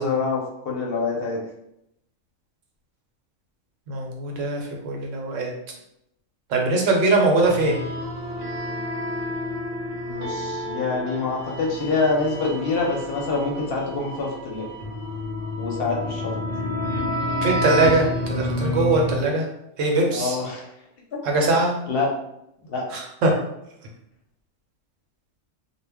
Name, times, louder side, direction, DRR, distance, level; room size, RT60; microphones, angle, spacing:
voice 1, 0.0-1.4 10.1-14.7 15.6-16.3 20.1-20.7 21.9-22.1 22.6-22.8, left 3 dB, 60° left, -2 dB, 0.7 m, -26 dB
voice 2, 3.9-5.5 6.5-7.8 17.4-19.5 19.8-20.4 21.2-21.7 22.9-23.3, right 2 dB, 80° right, 0 dB, 1.0 m, -21 dB
sound 1, 7.4-19.2, left 1 dB, 45° right, 0.6 m, -29 dB
2.1 x 2.1 x 3.4 m, 0.79 s
omnidirectional pair, 1.3 m